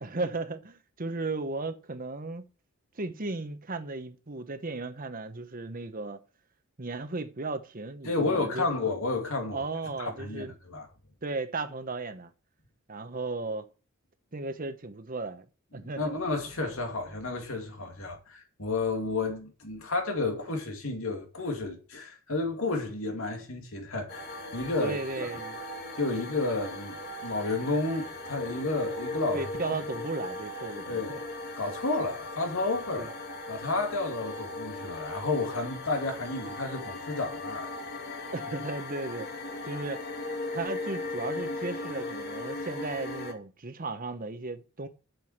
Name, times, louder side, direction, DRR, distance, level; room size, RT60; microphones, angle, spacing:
voice 1, 0.0-2.4 3.0-6.2 6.8-8.7 9.5-10.5 11.2-12.3 12.9-13.6 14.3-15.4 15.7-16.2 24.8-25.6 29.3-31.2 33.0-33.1 38.3-39.3 39.6-40.0 40.5-44.9, right 3 dB, 40° right, 1.1 m, -35 dB
voice 2, 8.0-10.9 15.8-25.3 26.0-29.8 30.9-31.2 31.6-33.1 33.5-37.7 38.1-38.2, left 3 dB, 80° left, 2.6 m, -31 dB
sound 1, 24.1-43.3, left 2 dB, 50° left, 2.2 m, -38 dB
7.8 x 7.1 x 7.3 m
head